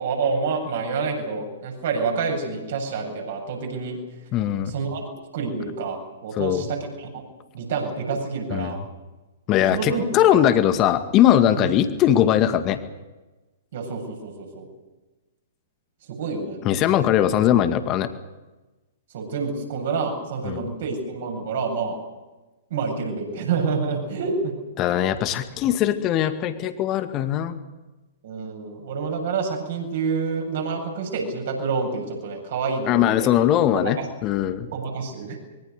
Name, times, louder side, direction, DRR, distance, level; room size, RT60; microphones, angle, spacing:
voice 1, 0.0-4.0 4.6-7.2 7.5-8.8 9.7-10.0 10.3-10.4 11.6-11.7 13.7-14.7 16.1-16.6 19.1-22.0 22.7-24.5 28.2-33.3 33.8-34.1 34.7-35.4, right 4 dB, 55° right, 2 dB, 7.9 m, -28 dB
voice 2, 4.3-4.7 6.4-6.6 8.5-8.7 9.5-12.8 16.7-18.1 20.4-20.6 24.8-27.6 32.9-34.7, left 11 dB, 30° left, 9 dB, 2.1 m, -20 dB
25.0 x 22.5 x 6.7 m, 1.1 s
figure-of-eight pair, 115°, 0 cm